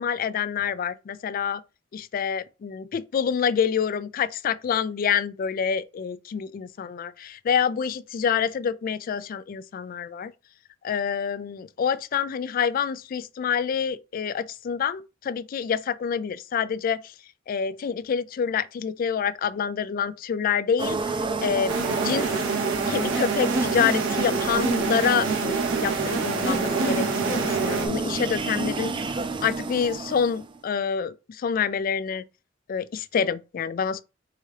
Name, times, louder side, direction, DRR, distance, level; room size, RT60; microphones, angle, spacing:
voice 1, 0.0-1.6 1.9-10.3 10.8-17.1 17.5-22.3 22.9-28.9 29.4-32.2 32.7-34.0, left 7 dB, 45° left, 0.3 m, -27 dB
sound 1, 20.8-30.6, right 4 dB, 25° right, 0.4 m, -29 dB
sound 2, 21.7-27.9, right 4 dB, 75° right, 0.8 m, -28 dB
4.8 x 2.8 x 3.2 m
head